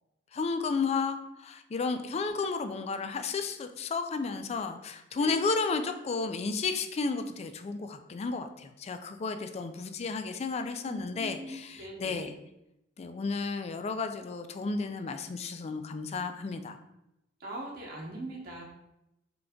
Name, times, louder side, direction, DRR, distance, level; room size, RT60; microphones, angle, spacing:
voice 1, 0.3-12.4 13.0-16.8, left 4 dB, 35° left, 8 dB, 0.3 m, -33 dB
voice 2, 10.8-12.2 17.4-18.6, right 1 dB, 50° right, -3 dB, 0.9 m, -41 dB
3.8 x 3.3 x 3.5 m, 0.87 s
head